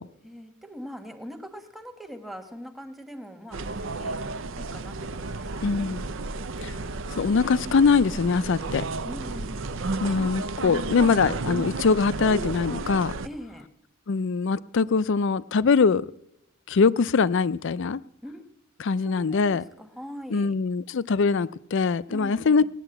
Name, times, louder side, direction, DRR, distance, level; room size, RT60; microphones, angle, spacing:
voice 1, 0.2-5.9 9.0-10.0 13.2-13.7 18.2-18.4 19.0-20.6 22.1-22.7, equal, ahead, 5 dB, 1.2 m, -42 dB
sound 1, 3.5-13.3, right 3 dB, 65° right, 0.6 m, -32 dB
voice 2, 5.6-6.0 6.6-6.8 7.1-8.8 10.0-13.1 14.1-16.1 16.7-18.0 18.8-19.6 20.3-22.6, left 5 dB, 60° left, 18 dB, 0.4 m, -23 dB
18.0 x 9.1 x 7.8 m, 0.87 s
head